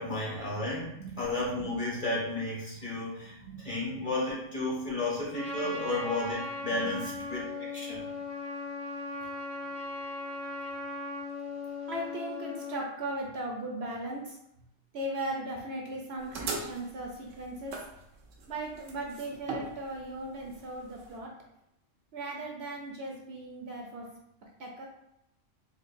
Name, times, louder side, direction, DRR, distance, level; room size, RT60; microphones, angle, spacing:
voice 1, 0.0-0.9 1.2-8.0, left 2 dB, 30° left, -7 dB, 1.1 m, -33 dB
voice 2, 3.2-3.7 6.7-7.0 11.9-14.4 14.9-17.8 18.5-21.3 22.1-24.1 24.6-24.9, right 1 dB, 65° right, -1 dB, 0.8 m, -38 dB
Trumpet, 5.3-12.9, left 2 dB, 55° left, 1.5 m, -38 dB
sound 1, 16.2-21.2, right 3 dB, 85° right, 1.0 m, -40 dB
4.3 x 2.4 x 2.5 m, 0.81 s
omnidirectional pair, 1.3 m